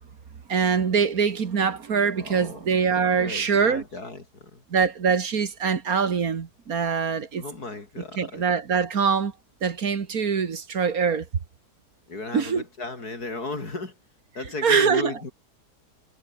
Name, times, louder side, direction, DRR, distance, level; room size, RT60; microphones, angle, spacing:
voice 1, 0.5-3.8 4.7-7.4 8.2-9.3 9.6-11.3 12.3-12.6 14.6-15.1, right 6 dB, 60° right, 2.1 m, -23 dB
voice 2, 2.2-2.6 3.2-4.6 7.4-8.4 12.1-14.0 14.3-15.3, left 3 dB, 70° left, 5.0 m, -35 dB
omnidirectional pair, 1.7 m